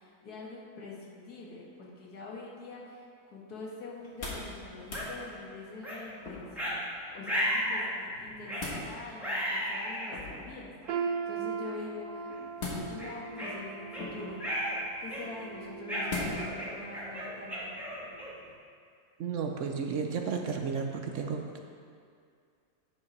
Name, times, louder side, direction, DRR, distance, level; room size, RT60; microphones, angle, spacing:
voice 1, 0.0-6.8 7.1-8.5 8.8-12.4 12.9-14.4 15.0-17.8, left 3 dB, 85° left, -4 dB, 2.0 m, -45 dB
sound 1, 4.0-4.5 4.8-5.1 6.2-6.7 8.1-8.9 10.1-10.6 12.6-13.2 14.0-14.4 16.1-16.6 17.0-17.1, left 3 dB, 45° left, 1.7 m, -38 dB
sound 2, 4.9-5.1 5.8-6.0 6.6-6.8 7.3-7.9 8.5-8.7 9.2-10.1 10.8-10.9 11.7-11.9 12.3-12.4 13.0-14.0 14.4-14.8 15.1-15.4 15.9-18.5, equal, ahead, 1.8 m, -34 dB
sound 3, 10.9-16.8 17.2-17.5 18.2-18.3, right 5 dB, 85° right, 1.1 m, -39 dB
voice 2, 19.2-21.6, right 5 dB, 60° right, 3 dB, 0.9 m, -33 dB
9.4 x 5.4 x 5.3 m, 2.3 s
omnidirectional pair, 1.6 m